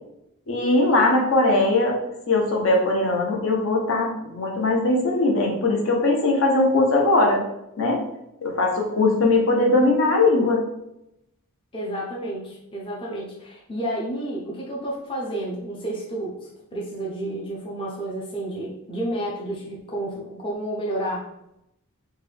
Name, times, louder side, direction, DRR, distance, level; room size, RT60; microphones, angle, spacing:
voice 1, 0.5-2.0 2.3-7.4 7.8-8.0 8.4-10.6, left 2 dB, 60° left, 0 dB, 0.7 m, -20 dB
voice 2, 11.7-21.3, right 1 dB, 25° left, -4 dB, 0.5 m, -31 dB
3.5 x 2.3 x 3.3 m, 0.84 s
head